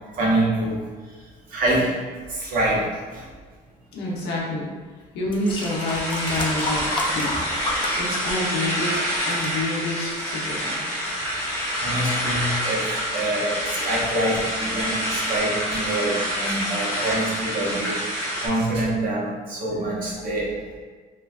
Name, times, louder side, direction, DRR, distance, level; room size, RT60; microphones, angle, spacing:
voice 1, 0.1-0.8 1.5-1.9 2.3-3.2 11.8-17.9 18.4-20.8, right 1 dB, 55° right, -6 dB, 1.0 m, -25 dB
voice 2, 3.9-4.7 5.1-7.3 8.0-10.8, left 1 dB, 90° left, -4 dB, 0.8 m, -28 dB
sound 1, 4.6-4.7 5.3-8.7 9.0-9.5 10.2-10.3, left 2 dB, 30° left, 0.4 m, -31 dB
sound 2, 5.4-18.5, equal, 10° left, 1.0 m, -27 dB
sound 3, 14.3-14.4 14.8-15.1 15.3-16.0 16.3-18.9, right 1 dB, 75° right, 1.1 m, -43 dB
3.1 x 2.3 x 2.4 m, 1.5 s
cardioid pair, 110°, 17 cm